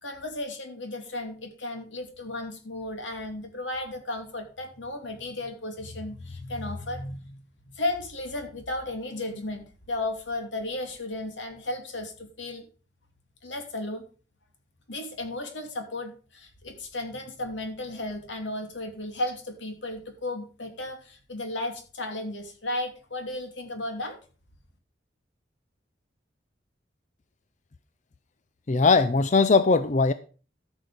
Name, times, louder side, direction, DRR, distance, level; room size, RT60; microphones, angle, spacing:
voice 1, 0.0-7.4 7.7-12.6 13.4-14.0 14.9-24.2, left 2 dB, 85° left, 5 dB, 2.8 m, -34 dB
voice 2, 28.7-30.1, left 4 dB, 40° left, 13 dB, 0.5 m, -20 dB
13.5 x 6.3 x 5.2 m, 0.37 s
head